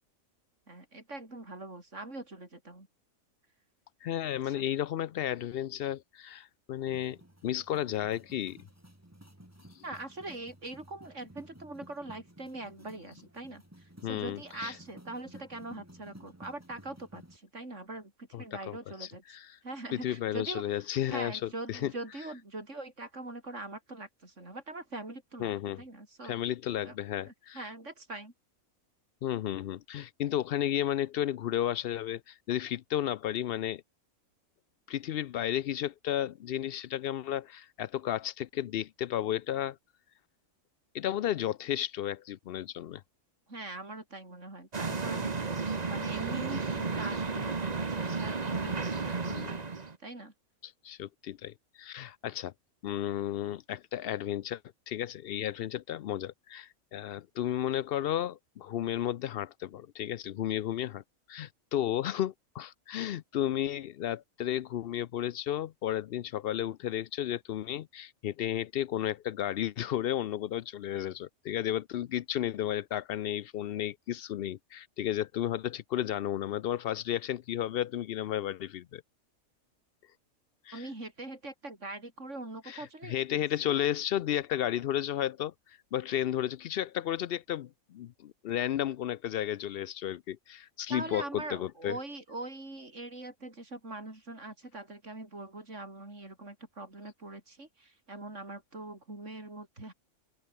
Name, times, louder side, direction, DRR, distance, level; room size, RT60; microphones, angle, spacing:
voice 1, 0.7-2.9 4.4-4.6 9.8-19.4 19.6-20.6 21.1-26.4 26.8-26.9 27.2-28.3 43.5-49.6 50.0-50.3 80.7-83.4 90.9-99.9, right 2 dB, 55° right, 6.5 m, -43 dB
voice 2, 4.0-8.6 9.7-9.8 14.0-14.7 18.3-19.5 19.9-21.9 25.4-25.8 26.2-27.7 29.2-33.8 34.9-39.8 40.9-43.0 49.3-49.6 50.6-52.5 52.8-54.6 54.9-61.0 61.3-79.0 80.7-80.9 82.7-92.0, left 11 dB, 70° left, 0.5 m, -33 dB
sound 1, 6.9-17.4, right 1 dB, 10° right, 3.7 m, -54 dB
sound 2, 44.7-50.0, right 4 dB, 30° right, 1.3 m, -33 dB
open air
omnidirectional pair, 1.5 m